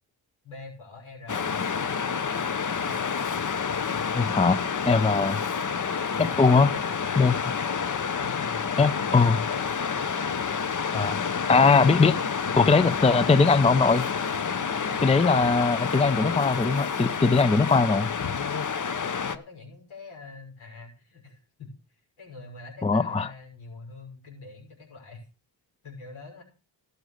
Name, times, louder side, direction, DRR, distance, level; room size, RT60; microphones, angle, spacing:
voice 1, 0.4-3.1 6.2-7.2 7.9-9.1 14.6-15.1 18.7-25.3 25.8-26.4, left 3 dB, 75° left, 1 dB, 6.2 m, -45 dB
Waves surf, 1.3-19.4, left 6 dB, 40° left, 0.9 m, -29 dB
voice 2, 4.1-5.4 6.2-6.7 7.2-7.6 8.8-9.4 10.9-11.2 11.5-12.2 12.6-14.1 15.0-18.1 22.8-23.3, left 4 dB, 15° left, 14 dB, 0.6 m, -21 dB
13.0 x 6.6 x 6.5 m, 0.35 s
cardioid pair, 60°, 49 cm